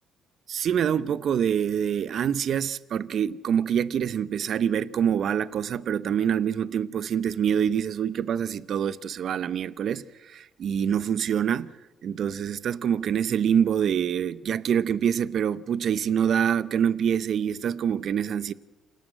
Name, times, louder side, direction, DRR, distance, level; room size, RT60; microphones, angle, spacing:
voice 1, 0.5-11.7 12.0-18.5, right 8 dB, 65° right, 0.7 m, -25 dB
28.0 x 17.5 x 7.7 m
supercardioid pair, 55°, 0 cm